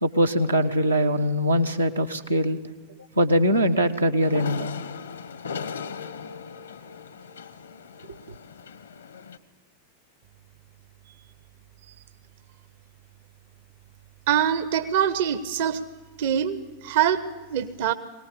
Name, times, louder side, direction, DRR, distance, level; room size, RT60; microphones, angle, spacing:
voice 1, 0.0-2.6 3.2-4.7, equal, 80° right, 3 dB, 1.3 m, -22 dB
sound 1, 4.2-9.4, left 6 dB, 70° left, 1.2 m, -38 dB
voice 2, 14.3-15.8 16.2-17.2 17.5-17.9, right 9 dB, 50° right, 12 dB, 1.0 m, -24 dB
22.5 x 19.0 x 8.5 m, 1.2 s
figure-of-eight pair, 90°, 0 cm